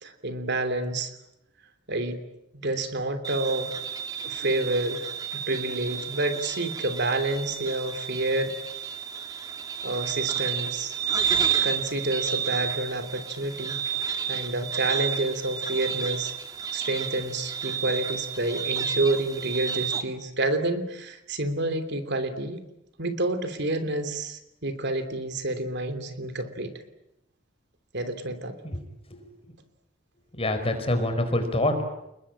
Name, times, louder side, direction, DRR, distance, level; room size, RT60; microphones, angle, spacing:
voice 1, 0.0-1.1 1.9-2.2 2.6-3.7 4.2-5.1 5.4-8.5 9.8-11.0 11.6-13.8 14.3-16.3 16.7-22.6 23.0-26.7 27.9-28.5, right 2 dB, 60° right, 9 dB, 3.1 m, -29 dB
sound 1, 3.2-20.0, right 7 dB, 20° right, 2.3 m, -31 dB
voice 2, 30.3-31.8, left 1 dB, 30° left, 7 dB, 4.7 m, -25 dB
29.5 x 21.5 x 8.8 m, 0.86 s
head